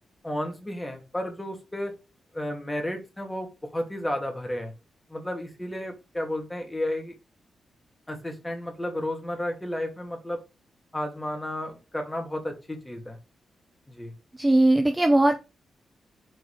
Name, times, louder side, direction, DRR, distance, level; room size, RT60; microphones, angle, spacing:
voice 1, 0.2-1.9 2.3-4.7 5.1-7.1 8.1-10.4 10.9-13.2 13.9-14.1, left 1 dB, 10° left, 2 dB, 2.6 m, -32 dB
voice 2, 14.3-15.4, right 1 dB, 15° right, 7 dB, 0.7 m, -19 dB
6.7 x 4.6 x 5.0 m, 0.27 s
wide cardioid pair, 130°, 0 cm